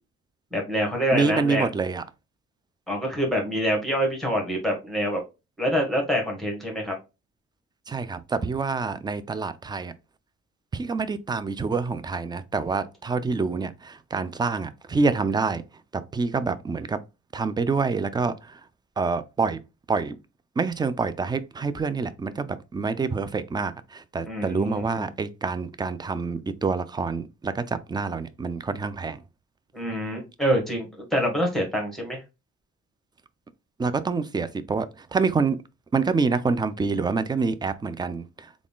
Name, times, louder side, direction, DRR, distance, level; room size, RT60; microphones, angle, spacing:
voice 1, 0.5-1.7 2.9-5.2 5.6-6.9 24.3-25.1 29.7-32.2, equal, ahead, 1.5 m, -26 dB
voice 2, 1.1-2.0 7.9-9.9 10.7-15.6 15.9-17.0 17.3-18.6 19.0-19.6 19.9-20.2 20.6-29.2 33.8-35.6 35.9-38.5, right 4 dB, 15° right, 0.4 m, -27 dB
3.7 x 2.4 x 3.6 m
cardioid pair, 90°, 30 cm